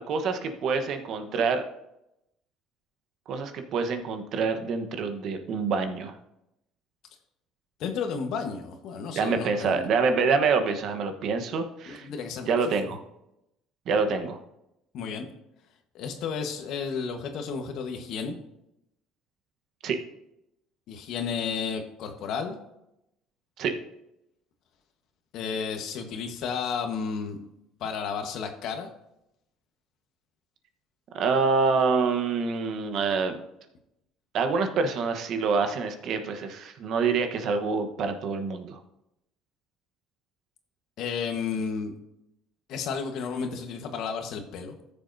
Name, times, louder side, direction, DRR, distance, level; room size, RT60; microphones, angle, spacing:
voice 1, 0.1-1.6 3.3-6.1 9.1-12.1 12.5-13.0 13.9-14.4 19.8-20.0 23.6-23.7 31.1-33.4 34.3-38.8, right 5 dB, 60° right, 7 dB, 1.1 m, -26 dB
voice 2, 7.8-9.9 11.9-12.5 12.8-12.9 14.9-15.3 15.9-18.4 20.9-22.5 25.3-27.4 27.8-28.9 41.0-41.9 42.7-44.8, left 6 dB, 65° left, 6 dB, 1.3 m, -32 dB
13.5 x 7.0 x 2.7 m, 0.85 s
cardioid pair, 105°, 0 cm